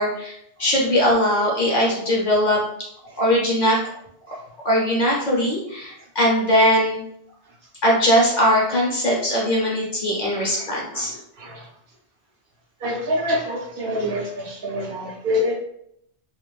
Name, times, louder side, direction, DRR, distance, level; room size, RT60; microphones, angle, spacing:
voice 1, 0.0-2.6 3.2-3.8 4.6-7.0 7.8-11.1, equal, 50° left, -4 dB, 0.7 m, -20 dB
voice 2, 10.3-10.6 10.9-11.7 12.8-15.5, left 1 dB, 60° right, -3 dB, 0.6 m, -27 dB
2.3 x 2.0 x 3.0 m, 0.75 s
omnidirectional pair, 1.2 m